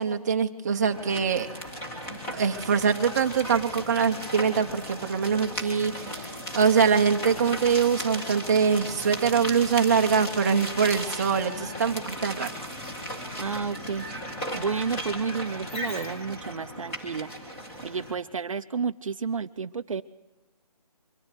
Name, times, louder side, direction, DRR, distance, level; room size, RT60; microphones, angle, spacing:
voice 1, 0.0-1.5 2.3-6.3 6.5-12.5, right 6 dB, 25° right, 5 dB, 0.9 m, -24 dB
sound 1, 0.9-18.2, equal, 10° left, 1.8 m, -36 dB
voice 2, 13.4-14.1 14.5-17.3 17.8-20.0, right 5 dB, 55° right, 9 dB, 0.7 m, -31 dB
24.0 x 14.5 x 9.8 m, 1.0 s
hypercardioid pair, 165°, 20 cm